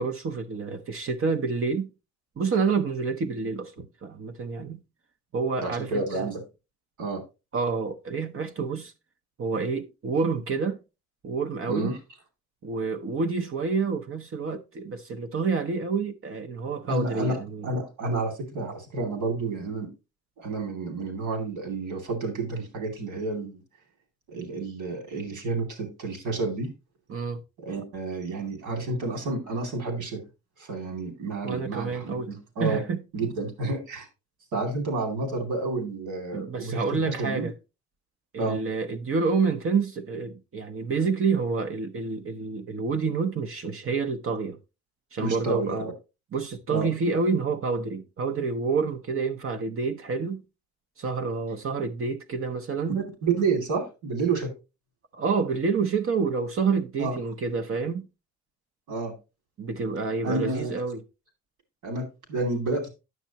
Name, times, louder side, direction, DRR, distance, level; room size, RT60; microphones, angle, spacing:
voice 1, 0.0-1.9 2.4-4.8 5.3-6.3 7.5-8.9 9.4-10.8 11.2-11.9 12.6-17.7 27.1-27.4 31.4-32.3 32.6-33.0 36.3-37.5 38.3-44.6 45.1-45.9 46.3-50.4 51.0-53.0 55.1-58.1 59.6-61.0, right 4 dB, 45° right, 0.8 m, -28 dB
voice 2, 5.6-6.4 7.0-7.2 11.7-12.0 16.9-17.4 17.6-19.9 20.4-23.6 24.3-26.7 27.6-30.2 30.6-32.8 33.1-34.1 34.5-37.5 38.4-38.6 45.2-45.8 46.7-46.9 52.9-54.5 57.0-57.2 58.9-59.1 60.2-60.7 61.8-62.9, right 3 dB, 85° right, 2.7 m, -30 dB
9.4 x 6.6 x 2.9 m
cardioid pair, 90°, 30 cm